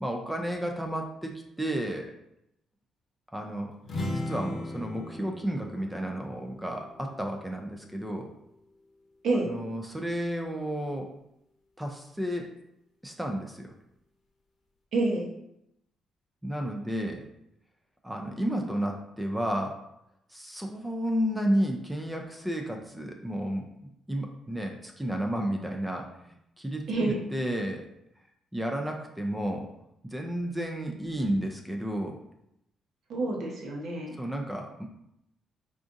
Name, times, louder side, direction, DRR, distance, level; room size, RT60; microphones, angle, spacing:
voice 1, 0.0-2.1 3.3-3.7 4.1-8.3 9.4-11.1 11.8-12.5 13.0-13.7 16.4-17.2 18.0-19.8 20.3-23.7 24.1-27.9 28.5-29.7 30.0-32.2 34.2-34.9, equal, 10° right, 2 dB, 0.4 m, -32 dB
sound 1, 3.8-7.5, left 1 dB, 45° left, 0.8 m, -37 dB
voice 2, 14.9-15.3 26.9-27.2 33.1-34.2, right 2 dB, 70° right, -1 dB, 0.8 m, -28 dB
3.7 x 2.4 x 2.5 m, 0.80 s
cardioid pair, 90°, 0 cm